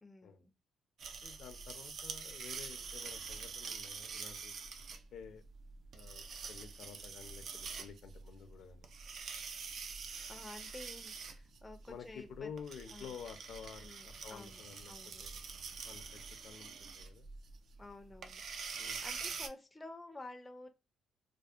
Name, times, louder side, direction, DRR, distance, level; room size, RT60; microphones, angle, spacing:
voice 1, 0.0-0.5 10.3-12.5 12.9-13.2 13.8-15.2 17.8-20.7, left 2 dB, 15° left, 6 dB, 0.4 m, -52 dB
sound 1, 1.0-19.5, right 5 dB, 60° right, 0.3 m, -46 dB
voice 2, 1.2-4.5 5.1-5.4 5.9-7.4 7.8-8.9 11.9-14.9 15.2-15.3 15.9-17.3 18.8-19.0, left 7 dB, 70° left, 7 dB, 0.5 m, -50 dB
2.6 x 2.1 x 2.4 m, 0.27 s
cardioid pair, 95°, 0 cm